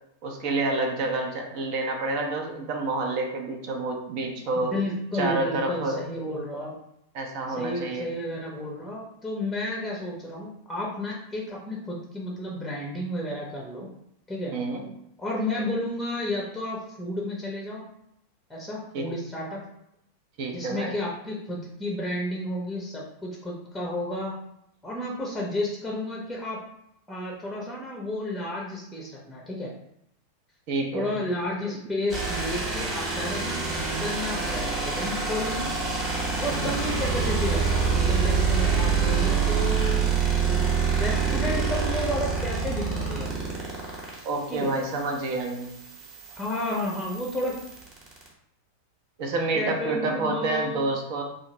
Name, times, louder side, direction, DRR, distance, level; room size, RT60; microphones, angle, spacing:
voice 1, 0.2-4.7 5.1-6.0 7.1-8.1 14.5-14.9 18.9-19.1 20.4-21.0 30.7-31.2 36.5-36.8 44.2-45.7 49.2-51.2, right 2 dB, 45° right, 2 dB, 0.5 m, -28 dB
voice 2, 4.5-6.7 7.6-13.9 14.3-14.5 15.2-17.8 18.5-19.6 20.5-24.3 24.8-26.6 27.1-29.7 30.9-35.7 36.4-40.2 40.4-43.5 44.5-44.7 46.3-47.6 49.5-50.9, left 1 dB, 5° left, -2 dB, 0.7 m, -32 dB
sound 1, 32.1-48.3, right 5 dB, 30° right, 0.9 m, -26 dB
2.8 x 2.5 x 2.8 m, 0.76 s
figure-of-eight pair, 90°, 0 cm